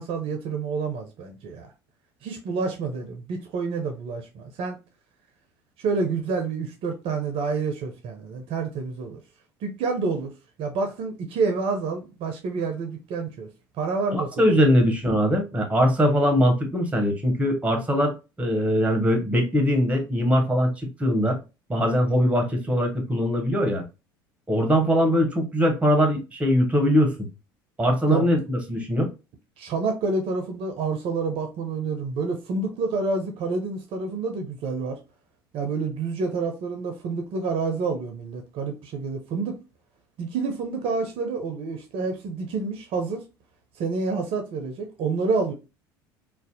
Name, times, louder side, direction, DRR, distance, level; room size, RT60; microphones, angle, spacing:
voice 1, 0.0-1.7 2.2-4.8 5.8-9.2 9.6-10.3 10.6-13.5 13.8-14.8 28.1-28.3 29.6-35.0 35.5-39.6 40.2-43.2 43.8-45.5, right 4 dB, 50° right, 0.5 m, -28 dB
voice 2, 14.1-20.7 21.0-21.4 21.7-23.8 24.5-27.3 27.8-29.1, equal, 10° right, 0.7 m, -21 dB
2.4 x 2.0 x 2.6 m
hypercardioid pair, 65°, 12 cm